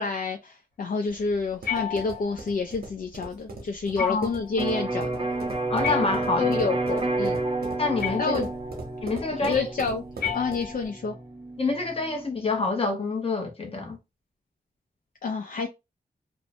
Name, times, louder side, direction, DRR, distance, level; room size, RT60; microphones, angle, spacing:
voice 1, 0.0-5.3 6.4-7.4 8.2-8.5 9.3-10.0 10.3-11.1 15.2-15.7, left 4 dB, 65° left, 0.4 m, -29 dB
sound 1, 1.1-10.9, right 3 dB, 90° right, 0.8 m, -41 dB
sound 2, 1.6-2.5 4.0-4.5 5.8-6.7 8.0-8.7 10.2-11.1, left 9 dB, 90° left, 1.1 m, -34 dB
voice 2, 4.0-4.3 5.7-6.5 7.8-8.4 9.0-9.7 11.6-14.0, left 3 dB, 40° left, 0.8 m, -27 dB
Electric guitar, 4.6-12.3, right 2 dB, 35° right, 0.6 m, -30 dB
2.6 x 2.1 x 2.6 m
wide cardioid pair, 100°, 16 cm